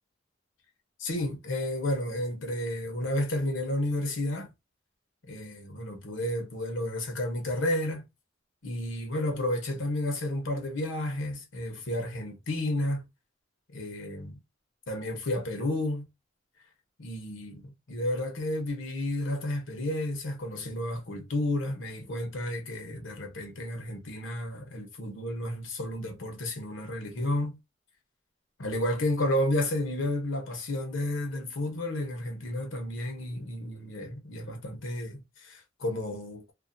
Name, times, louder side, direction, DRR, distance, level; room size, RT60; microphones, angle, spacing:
voice 1, 1.0-4.5 5.3-8.1 8.6-13.0 13.7-14.4 14.9-16.1 17.0-27.6 28.6-36.5, left 1 dB, 85° left, 0.9 m, -31 dB
2.5 x 2.5 x 2.6 m
head